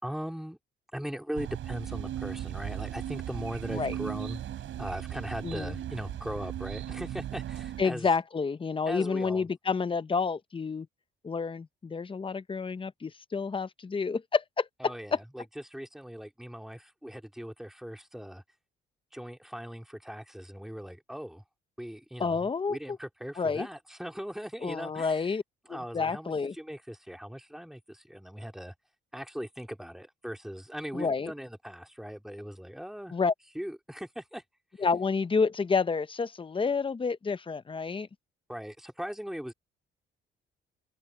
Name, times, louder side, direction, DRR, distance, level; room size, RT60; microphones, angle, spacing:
voice 1, 0.0-0.6 0.9-4.4 4.8-8.1 8.9-9.4 14.8-18.4 19.1-21.4 21.8-25.3 25.7-28.7 29.1-33.1 33.5-34.4 38.5-39.5, equal, ahead, 4.1 m, -39 dB
sound 1, 1.3-7.8, right 11 dB, 75° right, 5.8 m, -37 dB
voice 2, 5.4-5.7 7.8-10.9 11.2-15.2 22.2-22.8 23.4-23.7 24.6-25.4 25.7-26.5 30.9-31.3 33.1-33.3 34.8-38.1, left 5 dB, 25° left, 0.9 m, -29 dB
open air
cardioid pair, 90°, 20 cm